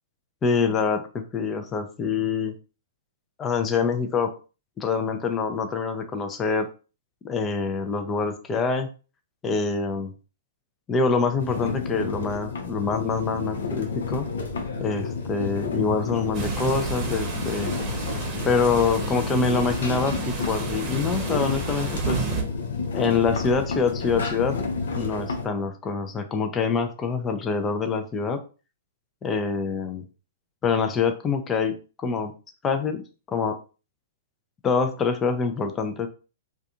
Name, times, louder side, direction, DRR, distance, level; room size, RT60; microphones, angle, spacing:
voice 1, 0.4-2.5 3.4-4.3 4.8-6.7 7.2-8.9 9.4-10.1 10.9-14.3 14.8-17.8 18.4-22.2 22.9-24.6 24.9-28.4 29.2-30.0 30.6-32.3 32.6-33.0 33.3-33.6 34.6-36.1, left 5 dB, 20° left, 6 dB, 0.4 m, -25 dB
sound 1, 11.4-25.5, left 4 dB, 70° left, 0.6 m, -31 dB
sound 2, 16.3-22.4, right 3 dB, 30° right, 0.9 m, -31 dB
2.3 x 2.3 x 2.8 m, 0.35 s
hypercardioid pair, 115°, 0 cm